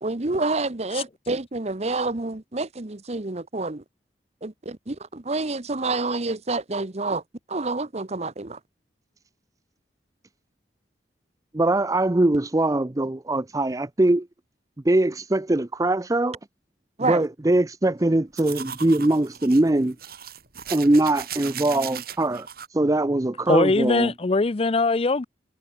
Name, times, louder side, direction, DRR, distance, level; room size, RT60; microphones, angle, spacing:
voice 1, 0.0-3.8 4.4-7.2 7.5-8.6 17.0-17.2, right 3 dB, 40° right, 1.1 m, -28 dB
voice 2, 11.5-14.3 14.8-16.4 17.0-20.0 20.7-24.1, right 1 dB, 20° right, 0.6 m, -22 dB
sound 1, 18.4-22.7, right 9 dB, 60° right, 4.4 m, -37 dB
voice 3, 23.5-25.3, left 3 dB, 35° left, 0.5 m, -21 dB
head